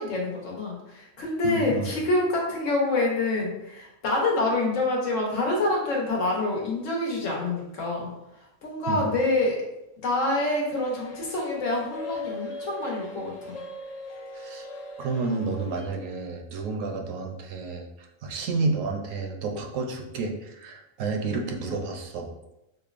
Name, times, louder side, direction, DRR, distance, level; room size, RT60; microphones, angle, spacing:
voice 1, 0.0-8.1 8.6-9.6 10.0-13.6, left 2 dB, 75° left, -2 dB, 1.3 m, -26 dB
voice 2, 1.4-2.0 8.9-9.1 14.3-14.7 15.0-22.3, right 3 dB, 80° right, 3 dB, 1.0 m, -30 dB
sound 1, 10.5-15.9, left 2 dB, 55° left, 0.4 m, -39 dB
5.3 x 2.1 x 2.4 m, 0.89 s
omnidirectional pair, 1.3 m